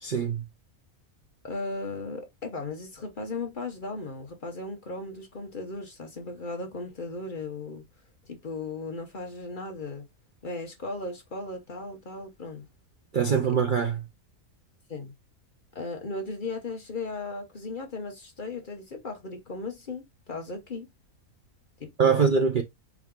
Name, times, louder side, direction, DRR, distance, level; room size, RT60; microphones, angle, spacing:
voice 1, 0.0-0.4 13.1-14.0 22.0-22.6, right 6 dB, 55° right, 0.6 m, -23 dB
voice 2, 1.4-7.8 8.2-10.0 10.4-12.7 13.3-13.6 14.9-15.1 15.7-20.9 21.8-22.3, left 3 dB, 40° left, 0.9 m, -36 dB
4.8 x 2.7 x 3.6 m
omnidirectional pair, 1.5 m